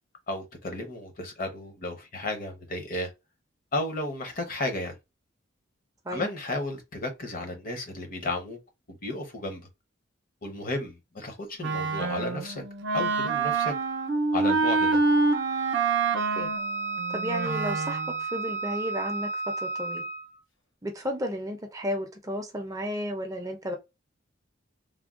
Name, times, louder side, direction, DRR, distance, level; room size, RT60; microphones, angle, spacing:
voice 1, 0.3-3.1 3.7-5.0 6.1-8.6 8.9-9.7 10.4-12.6 12.9-13.7 14.3-15.0, left 2 dB, 45° left, 0.8 m, -33 dB
Wind instrument woodwind instrument, 11.6-18.2, right 4 dB, 60° right, 0.6 m, -26 dB
Wind instrument woodwind instrument 2, 16.2-20.4, right 4 dB, 70° left, 1.0 m, -33 dB
voice 2, 17.1-20.1 20.8-23.8, equal, 15° right, 0.5 m, -33 dB
3.4 x 2.2 x 2.4 m
head